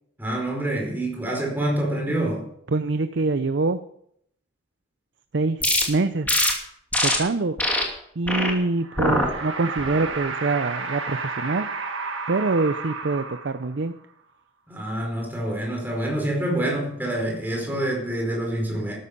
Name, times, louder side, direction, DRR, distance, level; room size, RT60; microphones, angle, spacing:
voice 1, 0.2-2.5 14.7-18.9, right 1 dB, 10° right, -1 dB, 4.7 m, -26 dB
voice 2, 2.7-3.8 5.3-6.3 7.0-7.6 8.2-11.7 12.3-14.0, right 3 dB, 65° right, 11 dB, 0.6 m, -25 dB
sound 1, 5.6-5.8 6.3-6.5 6.9-7.2 7.6-7.8 8.3-8.5 9.0-9.3 9.8-10.1, left 1 dB, 10° left, 2.6 m, -22 dB
sound 2, 8.8-13.9, right 4 dB, 85° right, 1.6 m, -32 dB
14.0 x 13.0 x 5.3 m, 0.72 s
head